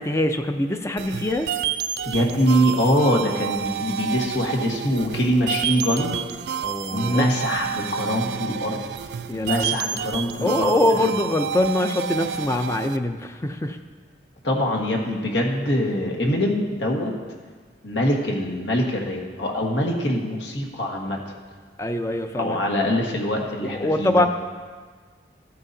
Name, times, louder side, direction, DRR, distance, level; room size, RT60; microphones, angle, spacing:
voice 1, 0.0-1.5 6.6-7.3 9.3-9.7 10.4-13.8 21.8-22.6 23.6-24.3, left 1 dB, 15° left, 7 dB, 0.5 m, -23 dB
sound 1, 1.0-13.0, right 8 dB, 65° right, 0.4 m, -30 dB
voice 2, 2.0-6.2 6.9-8.8 9.3-11.1 14.4-17.1 17.8-21.2 22.3-24.3, equal, 80° left, 0 dB, 1.6 m, -23 dB
14.0 x 9.5 x 2.7 m, 1.5 s
head